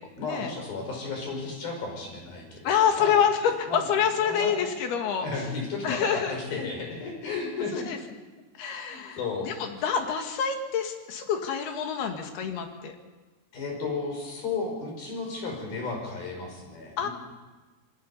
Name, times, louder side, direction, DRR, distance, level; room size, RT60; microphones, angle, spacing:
voice 1, 0.2-3.2 3.7-3.9 4.2-4.6 5.2-7.9 8.9-9.8 13.5-17.1, left 3 dB, 70° left, 1 dB, 7.4 m, -34 dB
voice 2, 2.6-5.3 5.8-6.4 7.7-8.0 8.6-9.2 9.4-12.9 17.0-17.1, left 7 dB, 90° left, 4 dB, 3.9 m, -27 dB
27.0 x 20.5 x 5.6 m, 1.3 s
omnidirectional pair, 4.4 m